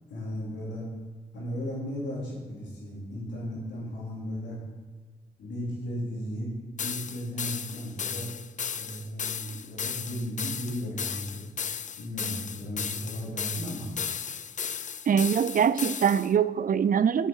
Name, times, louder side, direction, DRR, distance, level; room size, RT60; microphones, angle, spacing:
voice 1, 0.1-0.8 1.3-4.6 5.4-6.5 6.7-8.3 8.7-11.5 12.0-13.9, equal, 90° left, -5 dB, 4.0 m, -35 dB
sound 1, 6.8-16.3, left 7 dB, 45° left, 0.5 m, -35 dB
voice 2, 15.1-17.3, right 7 dB, 50° right, 16 dB, 0.5 m, -23 dB
8.3 x 8.0 x 7.4 m, 1.5 s
cardioid pair, 55°, 18 cm